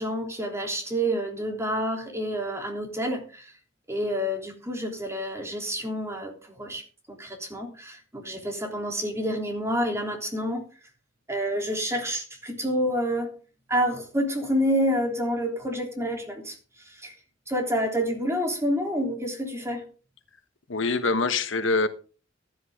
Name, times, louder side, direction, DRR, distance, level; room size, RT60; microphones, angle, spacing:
voice 1, 0.0-3.5 3.9-6.3 6.6-6.8 7.2-10.6 11.3-13.3 13.7-16.5 16.9-17.1 17.5-19.8, equal, 15° right, 3.5 m, -28 dB
voice 2, 20.7-21.9, left 3 dB, 80° left, 1.3 m, -24 dB
14.5 x 11.0 x 3.8 m
head